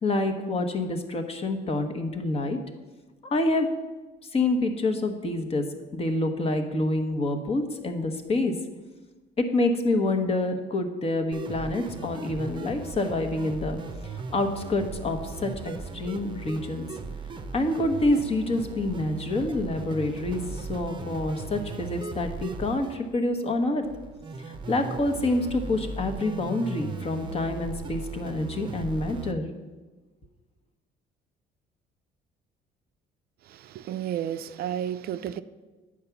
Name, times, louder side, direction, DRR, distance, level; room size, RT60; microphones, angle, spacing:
voice 1, 0.0-2.6 3.3-3.7 4.3-5.6 5.9-8.5 9.4-16.9 17.5-23.9 24.4-29.5, left 2 dB, 35° left, 1.1 m, -27 dB
sound 1, 11.3-29.3, right 4 dB, 30° right, 0.7 m, -38 dB
voice 2, 33.5-35.4, right 10 dB, 65° right, 0.4 m, -32 dB
8.6 x 4.9 x 7.0 m
cardioid pair, 110°, 17 cm